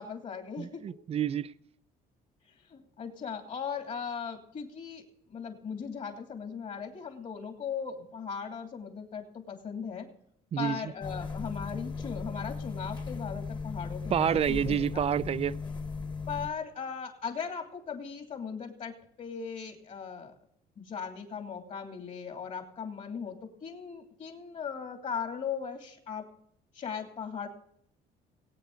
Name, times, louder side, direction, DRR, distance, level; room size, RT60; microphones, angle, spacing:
voice 1, 0.0-0.9 2.7-10.1 10.6-15.1 16.3-20.3 20.8-26.3 26.7-27.5, left 6 dB, 45° left, 2.9 m, -38 dB
voice 2, 0.6-1.5 10.5-10.9 14.1-15.6, right 9 dB, 35° right, 0.5 m, -28 dB
sound 1, 11.0-16.5, left 4 dB, 25° left, 1.6 m, -37 dB
20.0 x 9.0 x 3.9 m
cardioid pair, 110°, 17 cm